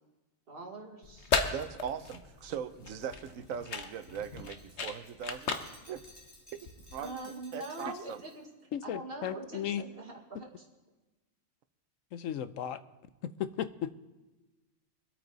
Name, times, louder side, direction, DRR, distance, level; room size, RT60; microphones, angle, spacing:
voice 1, 0.5-1.3 7.0-8.5 8.8-10.6, right 2 dB, 45° right, 0 dB, 2.2 m, -43 dB
sound 1, 1.0-7.1, left 5 dB, 55° left, 1.3 m, -36 dB
voice 2, 1.5-5.6 5.9-6.0 6.9-8.2, right 8 dB, 75° right, 11 dB, 1.1 m, -40 dB
Glass, 2.1-8.4, equal, 20° left, 3.4 m, -58 dB
voice 3, 8.7-9.8 12.1-12.8 13.2-13.9, left 10 dB, 80° left, 13 dB, 1.0 m, -35 dB
24.0 x 8.8 x 4.0 m, 1.1 s
omnidirectional pair, 1.4 m